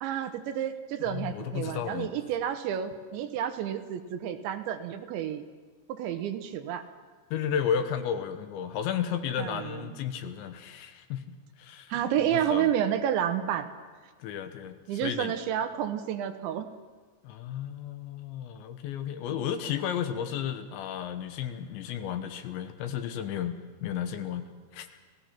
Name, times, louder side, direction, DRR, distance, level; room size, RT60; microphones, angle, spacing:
voice 1, 0.0-5.4 5.9-6.8 9.4-9.8 11.9-13.7 14.9-16.7 19.3-19.4, right 10 dB, 75° right, 8 dB, 3.2 m, -30 dB
voice 2, 1.1-2.1 7.3-11.9 12.2-12.7 14.2-15.3 17.2-24.4 24.7-24.9, left 8 dB, 75° left, 8 dB, 3.2 m, -33 dB
30.0 x 17.5 x 5.8 m, 1.5 s
omnidirectional pair, 5.6 m